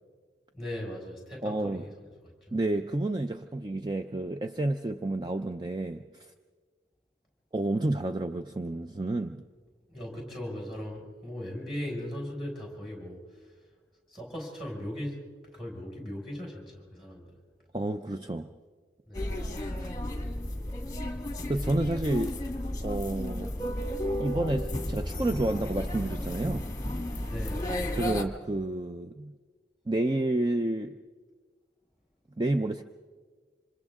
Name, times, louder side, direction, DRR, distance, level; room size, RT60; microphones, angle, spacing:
voice 1, 0.5-2.5 9.9-13.5 14.1-15.2 15.5-17.4 19.1-19.5 27.1-27.7, equal, ahead, -2 dB, 5.5 m, -39 dB
voice 2, 1.4-1.9 2.5-6.3 7.5-9.4 17.7-18.5 21.5-22.4 22.8-23.5 24.2-26.7 27.9-29.3 29.9-31.0 32.4-32.8, right 2 dB, 25° right, 7 dB, 0.5 m, -30 dB
sound 1, 19.1-28.2, left 1 dB, 20° left, 1.6 m, -33 dB
27.5 x 26.5 x 3.7 m, 1.6 s
head